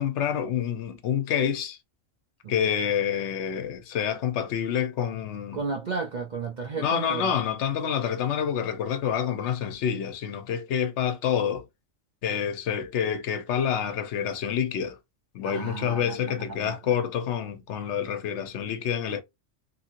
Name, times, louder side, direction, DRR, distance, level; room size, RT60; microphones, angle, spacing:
voice 1, 0.0-1.8 2.5-5.6 6.7-11.6 12.2-15.0 15.3-19.2, left 8 dB, 65° left, 0.9 m, -28 dB
voice 2, 5.5-7.3 15.4-16.8, right 4 dB, 50° right, 0.6 m, -33 dB
2.8 x 2.8 x 2.5 m
omnidirectional pair, 1.3 m